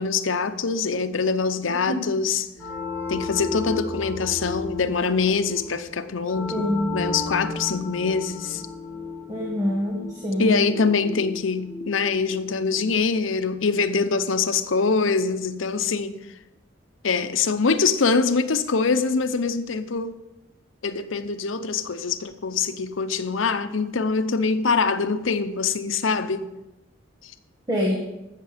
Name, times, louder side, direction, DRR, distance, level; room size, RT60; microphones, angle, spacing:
voice 1, 0.0-2.5 3.1-8.6 10.4-16.2 17.0-20.1 20.8-26.5, left 4 dB, 80° left, 10 dB, 0.7 m, -24 dB
sound 1, 2.5-13.0, left 3 dB, ahead, 4.3 m, -34 dB
voice 2, 6.5-6.9 9.3-10.5 27.7-28.0, left 1 dB, 20° right, -2 dB, 1.4 m, -25 dB
15.0 x 6.6 x 5.1 m, 0.96 s
head